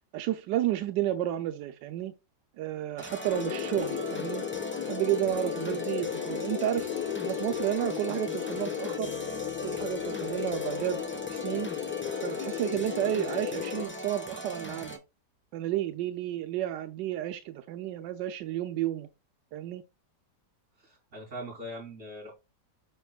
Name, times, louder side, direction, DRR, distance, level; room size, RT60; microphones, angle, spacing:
voice 1, 0.1-2.1 2.6-4.4 4.9-6.9 7.2-9.1 9.6-11.0 11.3-11.7 12.2-15.0 15.5-19.1 19.5-19.8, right 13 dB, 90° right, 1.3 m, -31 dB
sound 1, 3.0-15.0, equal, 10° left, 0.9 m, -40 dB
sound 2, 3.3-13.9, left 11 dB, 75° left, 1.1 m, -35 dB
voice 2, 20.8-22.3, equal, 45° right, 4.6 m, -41 dB
6.6 x 6.4 x 2.3 m
omnidirectional pair, 1.9 m